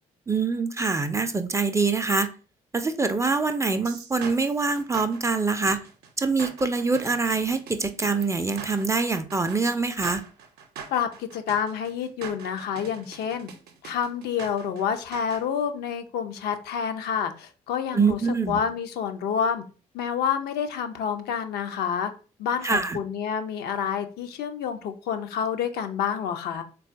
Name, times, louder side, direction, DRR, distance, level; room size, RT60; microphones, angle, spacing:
voice 1, 0.3-2.3 2.7-5.8 6.2-10.2 17.9-18.6 22.6-23.0, right 4 dB, 15° right, 9 dB, 0.4 m, -24 dB
sound 1, 3.8-15.4, right 6 dB, 60° right, 0.6 m, -43 dB
voice 2, 10.9-13.5 13.8-18.2 18.5-19.6 19.9-22.1 22.4-26.6, left 7 dB, 60° left, 7 dB, 0.5 m, -28 dB
3.7 x 2.3 x 2.5 m, 0.36 s
hypercardioid pair, 45°, 18 cm